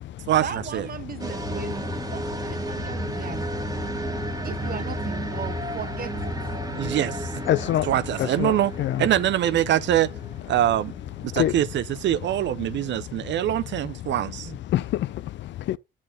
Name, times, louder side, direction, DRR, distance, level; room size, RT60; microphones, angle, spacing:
voice 1, 0.4-3.6 4.4-6.3 14.5-14.6, right 7 dB, 50° right, 1.0 m, -37 dB
sound 1, 1.2-12.0, right 1 dB, 15° right, 1.6 m, -33 dB
voice 2, 6.8-7.3 7.8-8.7 9.0-10.1 10.5-10.9 11.3-14.5, right 12 dB, 65° right, 0.5 m, -23 dB
voice 3, 7.5-7.9 8.2-9.1 11.4-11.6 14.7-15.8, left 13 dB, 65° left, 0.5 m, -26 dB
8.4 x 6.7 x 3.9 m
cardioid pair, 90°, 20 cm